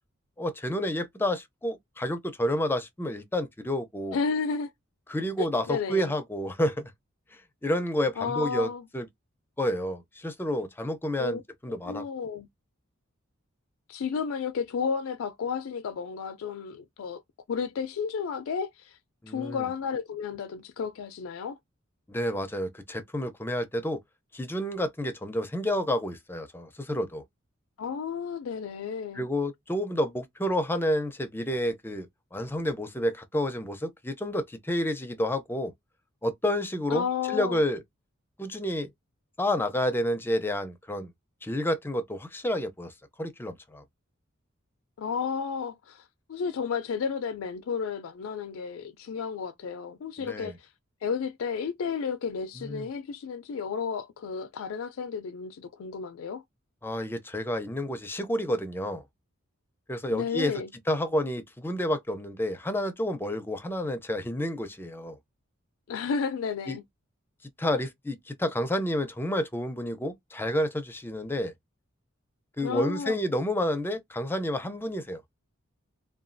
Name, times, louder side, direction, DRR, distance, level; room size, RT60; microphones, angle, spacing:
voice 1, 0.4-4.2 5.1-6.9 7.6-9.1 9.6-12.0 19.2-19.7 22.1-24.0 24.3-27.2 29.1-32.1 32.3-35.7 36.2-37.8 38.4-38.9 39.4-41.1 41.4-42.9 43.2-43.8 50.2-50.6 52.6-52.9 56.8-59.0 59.9-60.5 60.9-65.2 66.7-66.8 67.6-71.5 72.6-75.2, left 1 dB, 10° left, 0.4 m, -30 dB
voice 2, 4.1-4.7 5.4-6.1 8.2-8.8 11.2-11.4 11.7-12.5 13.9-17.2 17.5-19.0 19.3-21.6 27.8-29.3 36.9-37.6 45.0-50.7 51.0-56.4 60.1-60.7 65.9-66.8 72.6-73.2, left 6 dB, 75° left, 0.4 m, -32 dB
2.9 x 2.2 x 2.5 m
head